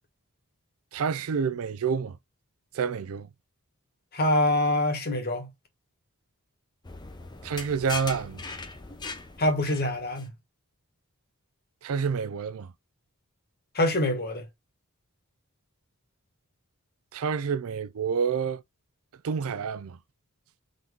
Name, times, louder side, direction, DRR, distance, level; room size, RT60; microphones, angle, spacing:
voice 1, 0.9-2.2 2.7-3.3 7.4-8.4 11.8-12.7 17.1-18.6 19.2-20.0, right 6 dB, 65° right, 0.4 m, -28 dB
voice 2, 4.1-5.5 9.4-10.3 13.7-14.5, left 1 dB, 45° left, 1.4 m, -25 dB
sound 1, 6.8-10.3, left 3 dB, 20° left, 0.7 m, -39 dB
4.0 x 2.8 x 3.4 m
head